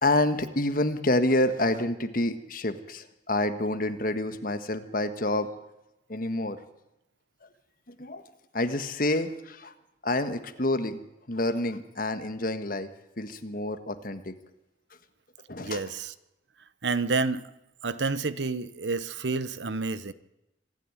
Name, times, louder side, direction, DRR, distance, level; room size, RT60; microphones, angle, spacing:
voice 1, 0.0-5.5 6.1-6.6 7.9-8.2 8.5-9.7 10.0-11.0 11.3-12.9 13.2-14.3 15.5-15.8, left 1 dB, 50° left, 1.6 m, -28 dB
voice 2, 15.6-16.1 16.8-17.4 17.8-20.1, right 3 dB, 80° right, 1.0 m, -29 dB
25.5 x 10.5 x 9.7 m
head